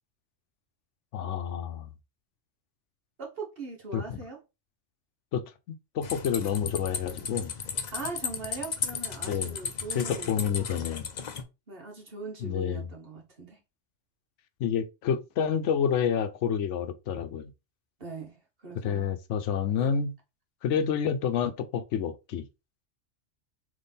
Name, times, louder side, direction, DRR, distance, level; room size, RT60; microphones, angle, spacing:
voice 1, 1.1-1.9 3.9-4.2 5.3-7.5 9.3-9.6 9.9-11.1 12.4-12.9 14.6-17.5 18.8-20.1 20.6-22.5, left 7 dB, 80° left, 0.9 m, -29 dB
voice 2, 3.2-4.4 7.9-10.5 11.7-13.6 18.0-19.1 19.8-20.0 20.7-20.8, right 3 dB, 55° right, 1.5 m, -41 dB
sound 1, 6.0-11.4, left 6 dB, 50° left, 0.6 m, -35 dB
4.0 x 3.2 x 3.5 m
omnidirectional pair, 1.2 m